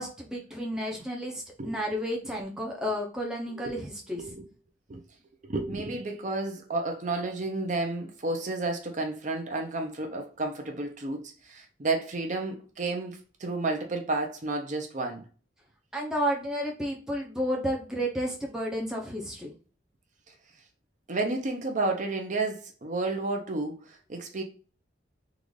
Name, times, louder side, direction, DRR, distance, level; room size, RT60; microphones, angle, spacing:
voice 1, 0.0-4.2 15.9-19.5, equal, 5° right, 0.6 m, -31 dB
voice 2, 1.6-2.0 3.6-3.7 4.2-4.4 4.9-5.0 5.4-15.2 21.1-24.4, right 2 dB, 40° right, 0.6 m, -31 dB
3.8 x 2.4 x 3.1 m
head